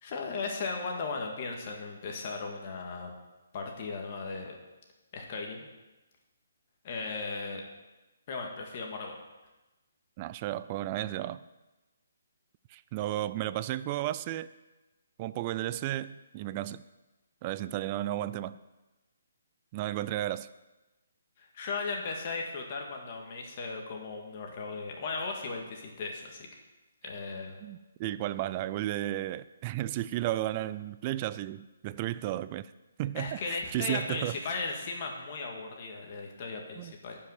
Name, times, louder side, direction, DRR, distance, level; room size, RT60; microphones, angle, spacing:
voice 1, 0.0-3.1 3.5-4.5 5.1-5.7 6.8-7.6 8.3-9.2 21.4-26.5 27.0-27.6 33.2-37.2, left 4 dB, 40° left, 1 dB, 1.9 m, -36 dB
voice 2, 10.2-11.4 12.7-14.5 15.2-16.8 17.4-18.6 19.7-20.5 27.6-32.7 33.0-34.4 36.8-36.9, right 14 dB, 30° right, 16 dB, 0.3 m, -33 dB
10.5 x 5.7 x 6.6 m, 1.1 s
hypercardioid pair, 145°, 0 cm